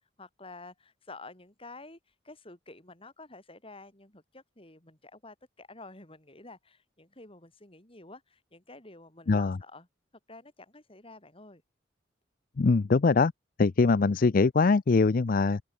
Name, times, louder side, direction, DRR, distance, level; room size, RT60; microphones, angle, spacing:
voice 1, 0.2-9.9 10.3-11.6, left 2 dB, 30° left, 5.5 m, -50 dB
voice 2, 12.6-13.3 13.6-15.6, left 4 dB, 50° left, 0.5 m, -22 dB
open air
head